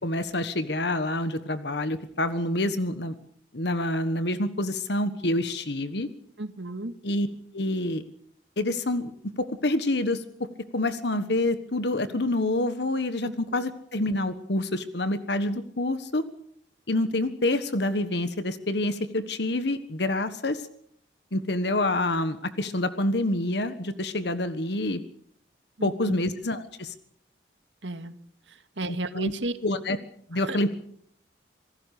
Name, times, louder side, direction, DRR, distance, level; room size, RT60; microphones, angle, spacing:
voice 1, 0.0-3.2 3.5-6.1 7.0-7.3 7.5-8.0 8.6-9.1 9.4-10.2 10.7-16.2 16.9-20.6 21.3-25.0 25.8-26.9 29.1-29.3 29.6-30.0 30.3-30.8, left 1 dB, 65° left, 11 dB, 1.4 m, -27 dB
voice 2, 6.4-6.9 13.2-13.4 25.8-26.1 27.8-28.1 28.5-29.5 30.4-30.6, right 2 dB, 80° right, 10 dB, 1.9 m, -33 dB
26.5 x 18.5 x 6.7 m, 0.64 s
head